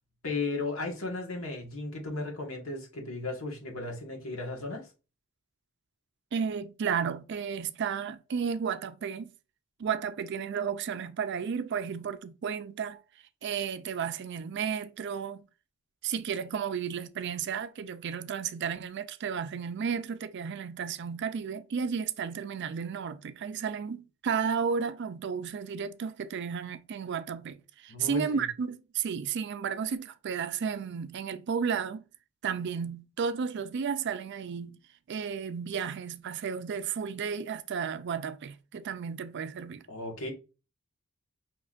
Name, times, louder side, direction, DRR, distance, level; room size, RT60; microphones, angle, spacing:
voice 1, 0.2-4.9 27.9-28.4 39.9-40.3, left 3 dB, 80° left, 1.4 m, -35 dB
voice 2, 6.3-9.3 9.8-13.0 13.4-15.4 16.0-32.1 32.4-34.8 35.1-39.9, right 6 dB, 55° right, 0.4 m, -33 dB
5.5 x 3.0 x 2.4 m
head